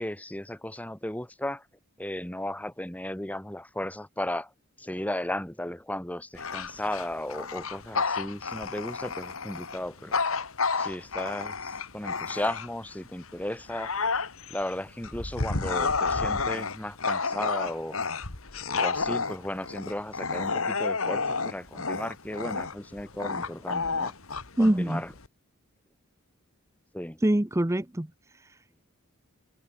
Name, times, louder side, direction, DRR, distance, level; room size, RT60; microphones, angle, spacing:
voice 1, 0.0-1.6 2.0-4.5 4.8-10.2 10.8-13.9 14.5-18.0 18.8-24.1 24.6-25.1 26.9-27.2, left 1 dB, 5° left, 1.6 m, -35 dB
Bark / Growling, 6.3-12.9 13.4-25.3, left 4 dB, 65° left, 2.2 m, -30 dB
voice 2, 24.6-25.0 27.2-28.1 28.3-28.6, right 1 dB, 15° right, 0.7 m, -24 dB
head